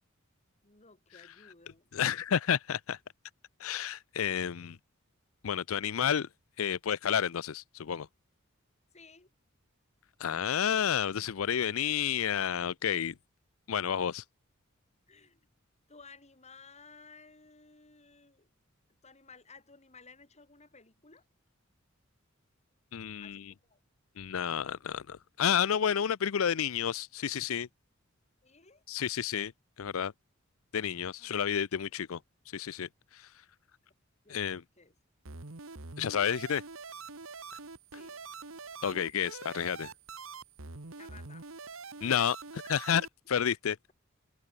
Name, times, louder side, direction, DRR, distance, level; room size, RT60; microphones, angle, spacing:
voice 1, 0.6-2.0 2.3-2.4 8.9-9.3 15.1-15.4 15.9-18.5 19.0-21.2 23.2-23.8 28.4-28.8 31.2-31.3 34.2-34.5 34.8-34.9 37.9-38.2 40.9-41.5 43.3-43.4, left 4 dB, 35° left, 4.0 m, -56 dB
voice 2, 1.9-3.0 3.6-4.8 5.4-6.3 6.6-8.1 10.2-13.1 13.7-14.2 22.9-23.5 24.2-27.7 28.9-29.5 29.8-30.1 30.7-32.2 32.5-33.3 34.3-34.6 36.0-36.6 38.8-39.9 42.0-43.9, left 8 dB, 80° left, 0.5 m, -31 dB
sound 1, 35.2-43.1, right 4 dB, 80° right, 1.8 m, -45 dB
head